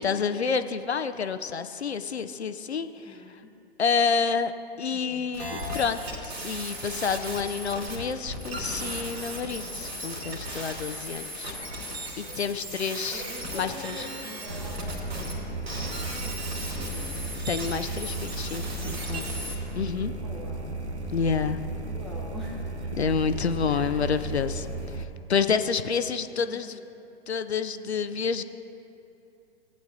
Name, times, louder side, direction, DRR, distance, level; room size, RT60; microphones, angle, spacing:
voice 1, 0.0-3.2 3.8-4.5 4.8-11.5 11.8-13.2 13.5-14.0 15.3-15.5 17.5-19.2 19.7-20.1 21.1-21.6 23.0-26.8 27.3-28.4, left 6 dB, 80° left, 11 dB, 0.6 m, -29 dB
voice 2, 3.1-3.6 4.9-5.3 8.5-9.0 12.0-12.4 13.1-14.8 16.2-17.2 18.4-19.2 20.2-20.8 21.9-23.3 23.7-24.1 26.4-26.6, left 1 dB, ahead, -6 dB, 0.8 m, -45 dB
sound 1, 5.3-15.3 15.6-19.6, right 1 dB, 70° right, 2.5 m, -36 dB
sound 2, 14.5-25.1, right 2 dB, 90° right, 0.8 m, -35 dB
17.0 x 9.0 x 2.7 m, 2.8 s
figure-of-eight pair, 110°, 32 cm